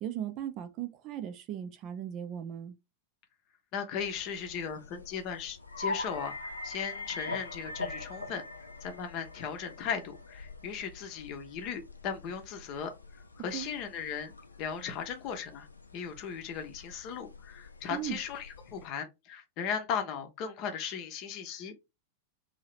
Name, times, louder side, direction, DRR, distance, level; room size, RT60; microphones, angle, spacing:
voice 1, 0.0-2.8 13.5-13.7 17.9-18.2, right 10 dB, 40° right, 0.5 m, -37 dB
voice 2, 3.7-12.9 13.4-14.3 14.6-15.7 15.9-21.8, left 7 dB, 40° left, 0.7 m, -37 dB
sound 1, 4.0-18.9, left 3 dB, 80° left, 0.5 m, -44 dB
2.8 x 2.7 x 3.1 m
figure-of-eight pair, 90°, 0 cm